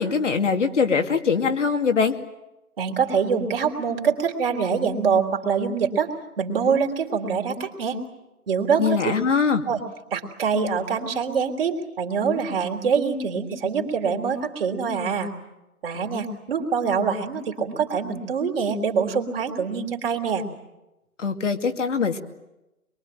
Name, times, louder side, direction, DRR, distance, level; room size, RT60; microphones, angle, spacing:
voice 1, 0.0-2.2 8.8-9.7 21.2-22.2, left 5 dB, 55° left, 6 dB, 2.5 m, -22 dB
voice 2, 2.8-8.0 8.5-9.0 9.7-9.8 10.1-15.3 15.8-20.5, right 6 dB, 40° right, 3 dB, 3.7 m, -24 dB
25.5 x 23.0 x 9.1 m, 0.98 s
figure-of-eight pair, 145°, 44 cm